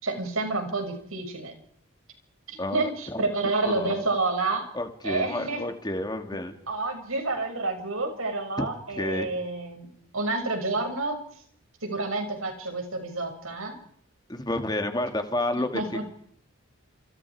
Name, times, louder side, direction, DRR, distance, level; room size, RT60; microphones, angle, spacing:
voice 1, 0.0-1.5 2.5-4.7 5.0-5.6 6.7-9.9 10.1-11.2 11.8-13.8 15.5-16.1, right 3 dB, 75° right, 4 dB, 6.6 m, -29 dB
voice 2, 2.6-3.3 3.6-4.0 4.7-6.5 8.6-8.7 8.9-9.3 14.3-16.0, left 1 dB, 20° left, 6 dB, 2.4 m, -30 dB
29.5 x 28.5 x 4.9 m, 0.68 s
head